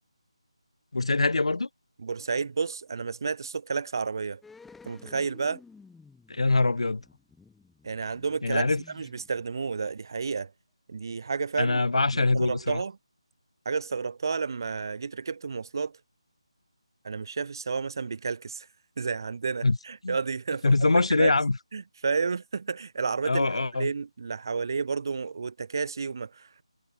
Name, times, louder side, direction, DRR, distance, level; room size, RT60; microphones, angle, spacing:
voice 1, 0.9-1.7 6.3-7.0 8.4-8.8 11.6-12.8 19.6-19.8 20.0-20.2 20.6-21.6 23.2-23.9, left 3 dB, 70° left, 4.6 m, -23 dB
voice 2, 2.0-4.4 4.9-5.6 7.8-8.7 8.9-10.5 10.9-11.8 12.1-12.9 13.6-16.0 17.0-18.7 19.0-20.6 21.1-21.3 21.7-26.6, right 5 dB, 40° right, 1.0 m, -31 dB
sound 1, 4.4-9.9 10.1-10.2, left 4 dB, 5° left, 5.3 m, -53 dB
figure-of-eight pair, 170°, 3 cm